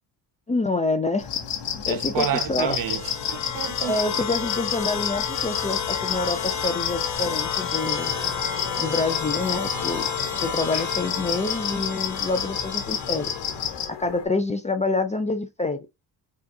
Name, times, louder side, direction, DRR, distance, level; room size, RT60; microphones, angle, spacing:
voice 1, 0.5-1.3 1.9-2.8 3.8-8.1 8.8-10.0 10.4-13.3 13.9-15.8, left 3 dB, 20° left, 0.3 m, -27 dB
sound 1, 1.2-13.9, left 8 dB, 75° left, 0.9 m, -30 dB
voice 2, 1.9-4.2, right 10 dB, 55° right, 0.4 m, -30 dB
sound 2, 2.6-13.8, left 6 dB, 40° left, 1.0 m, -32 dB
sound 3, 7.9-14.3, left 8 dB, 90° left, 1.2 m, -40 dB
4.4 x 2.4 x 2.6 m
cardioid pair, 95°, 42 cm